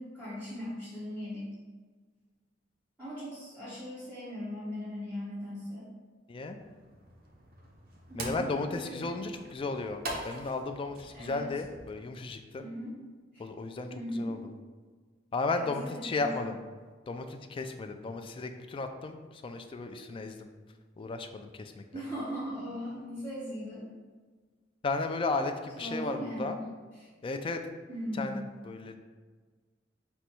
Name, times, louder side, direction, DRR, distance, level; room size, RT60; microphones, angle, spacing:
voice 1, 0.0-1.5 3.0-5.8 8.1-9.2 10.2-10.3 11.1-11.5 12.6-12.9 13.3-13.4 13.9-14.4 15.5-16.3 21.9-23.9 25.8-26.6 26.9-27.1 27.9-28.4, equal, 10° right, -13 dB, 1.3 m, -38 dB
sound 1, 6.6-12.0, right 1 dB, 50° right, 0.8 m, -44 dB
voice 2, 8.1-12.6 13.4-14.5 15.3-16.6 17.1-20.5 21.0-21.8 24.8-26.6 27.2-27.6 28.2-29.0, left 3 dB, 30° left, 6 dB, 0.3 m, -34 dB
5.0 x 2.3 x 4.3 m, 1.4 s
head